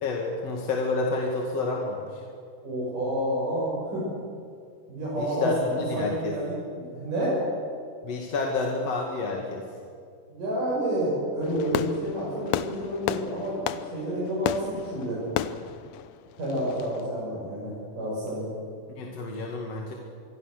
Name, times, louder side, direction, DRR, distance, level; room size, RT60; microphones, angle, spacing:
voice 1, 0.0-2.2 5.2-6.3 8.0-9.7 19.0-19.9, left 3 dB, 55° left, 0 dB, 3.0 m, -29 dB
voice 2, 2.6-4.1 4.9-7.4 10.3-15.2 16.4-18.5, right 1 dB, 75° right, -8 dB, 8.8 m, -29 dB
Fireworks, 11.4-17.0, left 11 dB, 75° left, 1.7 m, -33 dB
26.0 x 22.0 x 6.7 m, 2.2 s
omnidirectional pair, 3.7 m